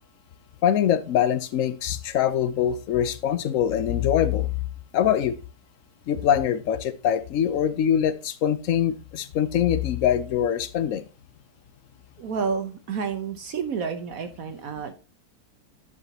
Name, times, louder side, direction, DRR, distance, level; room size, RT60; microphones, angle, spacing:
voice 1, 0.6-4.5 4.9-5.3 6.1-11.0, left 9 dB, 60° left, 14 dB, 1.0 m, -23 dB
voice 2, 12.2-14.9, right 6 dB, 60° right, 8 dB, 1.2 m, -30 dB
11.0 x 5.0 x 2.9 m, 0.33 s
omnidirectional pair, 1.8 m